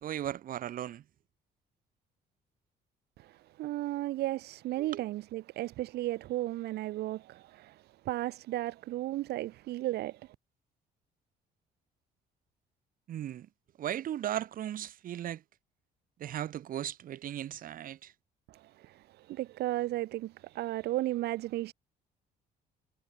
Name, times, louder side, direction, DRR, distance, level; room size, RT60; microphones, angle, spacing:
voice 1, 0.0-1.0 4.8-5.0 13.1-13.5 13.8-15.4 16.2-18.1, right 11 dB, 55° right, 1.5 m, -37 dB
voice 2, 3.2-10.3 18.5-21.7, right 16 dB, 75° right, 1.0 m, -35 dB
cardioid pair, 110°, 17 cm